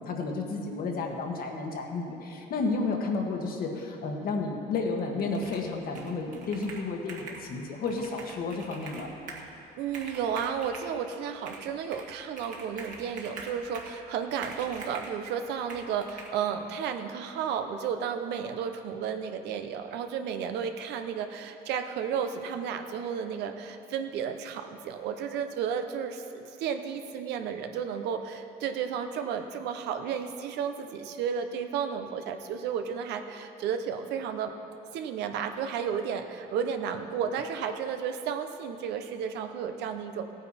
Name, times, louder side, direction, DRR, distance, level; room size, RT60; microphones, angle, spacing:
voice 1, 0.0-9.1, left 3 dB, 60° left, 2 dB, 1.6 m, -32 dB
Computer keyboard, 5.3-5.7 5.9-7.5 7.9-9.5 9.9-10.9 11.5-12.1 12.4-14.0 14.4-15.2 15.7-16.3, right 3 dB, 50° right, 1.8 m, -44 dB
voice 2, 9.8-34.6 34.9-40.4, right 7 dB, 85° right, 7 dB, 0.9 m, -33 dB
16.0 x 9.4 x 4.3 m, 2.8 s
cardioid pair, 110°, 17 cm